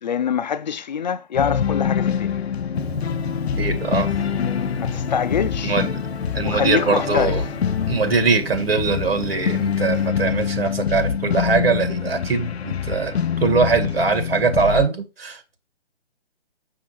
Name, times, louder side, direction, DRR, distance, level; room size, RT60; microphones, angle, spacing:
voice 1, 0.0-2.4 4.8-5.8 6.4-7.4, left 7 dB, 45° left, 0.6 m, -25 dB
sound 1, 1.3-14.9, left 7 dB, 85° left, 0.7 m, -25 dB
Gong, 2.7-10.1, left 1 dB, ahead, 1.0 m, -36 dB
voice 2, 3.6-4.1 5.6-5.9 6.3-7.4 7.9-13.1 13.4-15.6, right 4 dB, 70° right, 2.0 m, -22 dB
6.7 x 6.4 x 3.1 m
hypercardioid pair, 160°, 31 cm